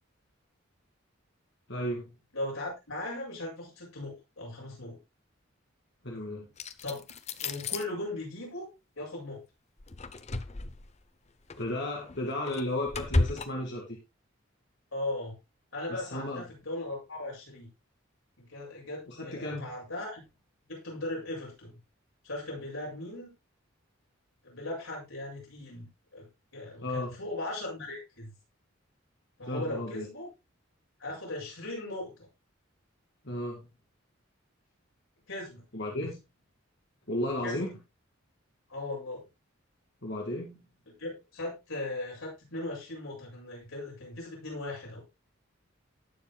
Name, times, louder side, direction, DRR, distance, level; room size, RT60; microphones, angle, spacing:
voice 1, 1.7-2.1 6.0-6.5 11.6-14.0 15.9-16.4 19.1-19.7 26.8-27.1 29.5-30.1 33.2-33.6 35.7-36.2 37.1-37.7 40.0-40.6, left 1 dB, 55° left, -1 dB, 2.5 m, -34 dB
voice 2, 2.3-5.0 6.8-7.0 7.4-8.7 9.0-9.4 14.9-15.3 15.7-17.7 18.4-20.2 20.7-21.8 22.2-23.3 24.4-25.9 26.1-26.3 26.5-28.3 29.4-30.3 31.0-32.1 35.3-35.6 36.0-36.1 37.4-37.6 38.7-39.2 41.0-45.0, left 2 dB, 85° left, -2 dB, 7.8 m, -38 dB
sound 1, 6.6-7.8 9.8-10.9 11.5-11.7 12.1-13.5, left 2 dB, 30° left, 0.7 m, -32 dB
18.5 x 7.2 x 2.3 m, 0.24 s
head